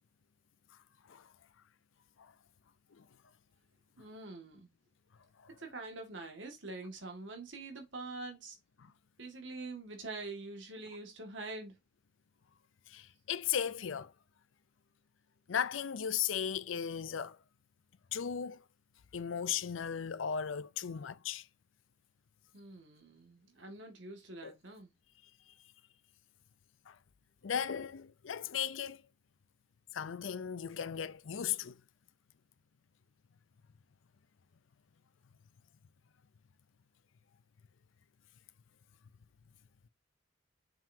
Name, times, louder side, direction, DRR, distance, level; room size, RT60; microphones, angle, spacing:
voice 1, 4.0-4.7 5.5-8.6 9.2-11.7 22.5-24.9, right 3 dB, 70° right, 2.0 m, -45 dB
voice 2, 12.9-14.1 15.5-17.4 18.1-18.6 19.1-21.5 24.4-24.5 26.9-27.0 27.4-29.0 29.9-31.8, left 8 dB, 85° left, 0.5 m, -36 dB
7.0 x 5.8 x 2.8 m
head